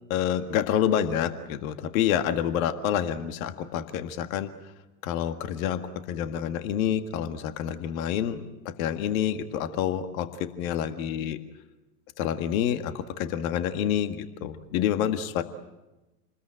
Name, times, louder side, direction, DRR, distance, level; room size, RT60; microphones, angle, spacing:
voice 1, 0.1-4.5 5.0-5.8 6.1-8.4 8.8-11.4 12.2-15.4, left 9 dB, 60° left, 9 dB, 1.8 m, -28 dB
28.0 x 20.5 x 9.0 m, 1.0 s
hypercardioid pair, 90°, 46 cm